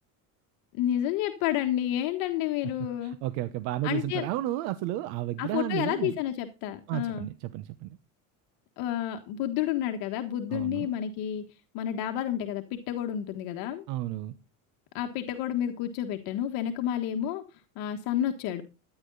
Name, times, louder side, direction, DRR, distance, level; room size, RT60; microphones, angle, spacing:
voice 1, 0.7-3.2 3.8-4.2 5.4-7.3 8.8-11.4 11.7-13.8 14.9-17.4 17.7-18.6, left 11 dB, 65° left, 6 dB, 1.5 m, -30 dB
voice 2, 3.0-6.1 6.9-8.0 10.5-10.9 13.9-14.3, right 15 dB, 70° right, 12 dB, 1.0 m, -32 dB
13.5 x 10.0 x 4.0 m, 0.30 s
cardioid pair, 160°, 38 cm